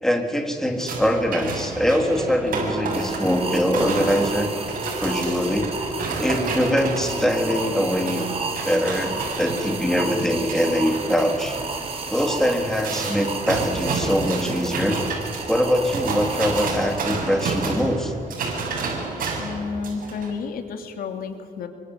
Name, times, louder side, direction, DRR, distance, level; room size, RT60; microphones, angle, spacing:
voice 1, 0.0-4.5 5.0-5.7 6.2-8.2 8.6-11.6 12.1-15.0 15.5-18.1, equal, 5° left, 3 dB, 3.6 m, -23 dB
sound 1, 0.8-20.3, right 3 dB, 75° right, 7.4 m, -30 dB
sound 2, 2.9-17.6, right 4 dB, 40° right, 5.1 m, -33 dB
voice 2, 19.4-21.7, left 5 dB, 85° left, 6 dB, 2.9 m, -31 dB
28.0 x 25.0 x 8.2 m, 2.1 s
cardioid pair, 110°, 15 cm